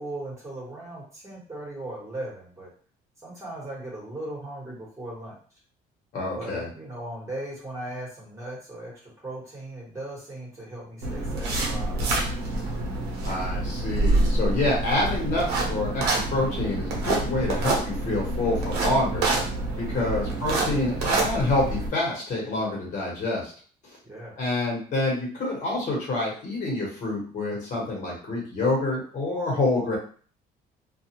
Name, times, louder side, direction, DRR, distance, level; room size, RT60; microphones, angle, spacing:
voice 1, 0.0-2.7 3.2-5.3 6.3-12.3 19.9-20.4 24.0-24.4, right 1 dB, 15° right, -5 dB, 1.3 m, -38 dB
voice 2, 6.1-6.7 13.2-19.3 19.8-23.5 23.8-24.0 24.4-30.0, left 2 dB, 45° left, -3 dB, 1.3 m, -27 dB
sound 1, 11.0-21.9, right 2 dB, 80° right, 0.8 m, -27 dB
2.4 x 2.3 x 2.9 m, 0.44 s
cardioid pair, 110°, 17 cm